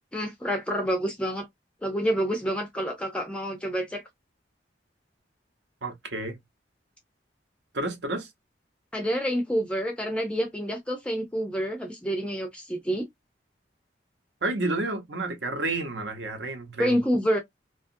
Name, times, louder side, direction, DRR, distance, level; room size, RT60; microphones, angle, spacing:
voice 1, 0.1-1.5 1.8-4.0 8.9-13.1 16.8-17.4, equal, 5° left, 0.4 m, -28 dB
voice 2, 5.8-6.4 7.7-8.3 14.4-17.0, right 2 dB, 75° right, 0.9 m, -30 dB
2.7 x 2.4 x 2.5 m
head